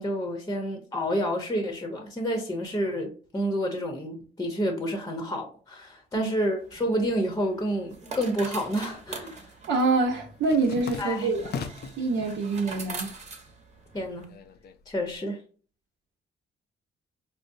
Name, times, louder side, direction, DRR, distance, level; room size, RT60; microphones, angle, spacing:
voice 1, 0.0-9.5 11.0-11.3 13.9-14.3 14.9-15.4, equal, 15° left, 0.8 m, -29 dB
sound 1, 6.6-14.3, right 3 dB, 35° right, 1.0 m, -43 dB
sound 2, 8.5-9.0 9.3-12.1 12.5-13.2 13.5-15.2, left 6 dB, 55° left, 0.5 m, -39 dB
voice 2, 9.7-11.5 12.0-13.1, right 3 dB, 75° right, 0.8 m, -26 dB
5.1 x 2.0 x 2.6 m
cardioid pair, 90°, 20 cm